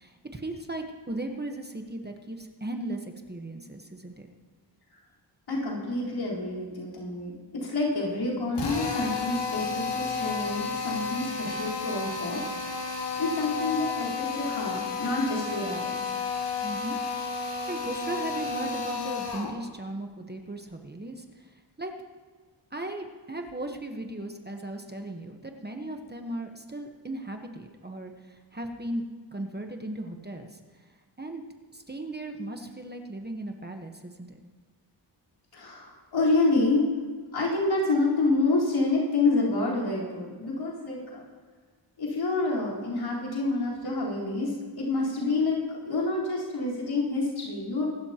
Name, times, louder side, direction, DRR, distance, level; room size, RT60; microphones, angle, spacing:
voice 1, 0.0-4.3 16.6-17.0 17.3-21.9 22.7-30.6 31.2-31.4 31.7-34.4, right 1 dB, 20° right, 4 dB, 1.1 m, -37 dB
voice 2, 5.5-12.4 13.2-16.0 35.5-36.9 37.3-41.2 42.0-45.6 45.9-47.8, left 2 dB, 90° left, -7 dB, 4.2 m, -28 dB
Drill, 8.5-19.6, left 4 dB, 65° left, 1.9 m, -32 dB
24.0 x 12.5 x 2.9 m, 1.5 s
wide cardioid pair, 105°, 45 cm